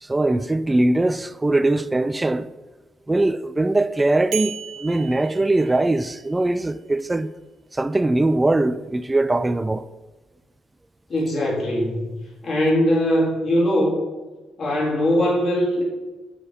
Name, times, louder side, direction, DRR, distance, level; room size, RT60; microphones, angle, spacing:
voice 1, 0.0-2.5 3.1-7.3 7.7-9.9, right 2 dB, 15° right, 0.4 m, -21 dB
sound 1, 4.3-6.4, right 8 dB, 75° right, 0.8 m, -35 dB
voice 2, 11.1-12.1 12.4-14.0 14.6-15.8, equal, 45° left, 3.5 m, -21 dB
8.9 x 7.0 x 5.0 m
cardioid pair, 90°, 0 cm